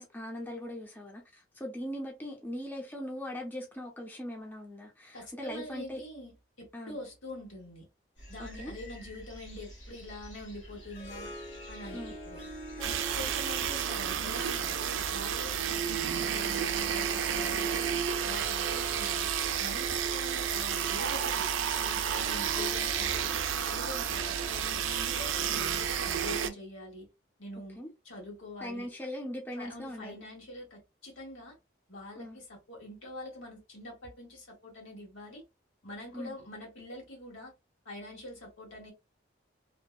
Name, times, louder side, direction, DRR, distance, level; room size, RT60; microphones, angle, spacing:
voice 1, 0.0-6.0 6.7-7.0 8.4-8.7 11.9-12.1 27.8-27.9 28.6-30.2 32.2-32.4 36.1-36.4, equal, 10° left, 0.4 m, -40 dB
voice 2, 5.1-7.9 8.3-11.3 11.7-12.4 12.8-17.8 18.2-19.3 19.6-27.1 27.4-27.8 28.0-28.9 29.6-31.6 31.9-35.4 35.8-37.5 37.8-38.9, left 1 dB, 85° left, 1.4 m, -45 dB
sound 1, 8.2-13.4, equal, 70° left, 1.2 m, -49 dB
Harp, 10.7-25.9, equal, 50° left, 0.9 m, -47 dB
sound 2, 12.8-26.5, right 8 dB, 80° right, 0.3 m, -31 dB
2.6 x 2.1 x 2.2 m
head